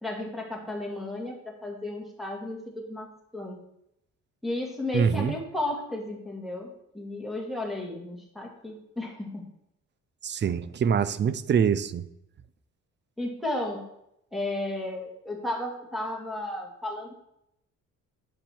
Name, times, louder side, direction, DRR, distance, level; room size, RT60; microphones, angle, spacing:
voice 1, 0.0-3.6 4.4-9.5 13.2-13.9 14.3-17.1, left 1 dB, ahead, -1 dB, 1.9 m, -34 dB
voice 2, 4.9-5.3 10.2-12.0, right 7 dB, 35° right, 15 dB, 0.5 m, -24 dB
7.3 x 5.3 x 4.4 m, 0.79 s
cardioid pair, 90°, 30 cm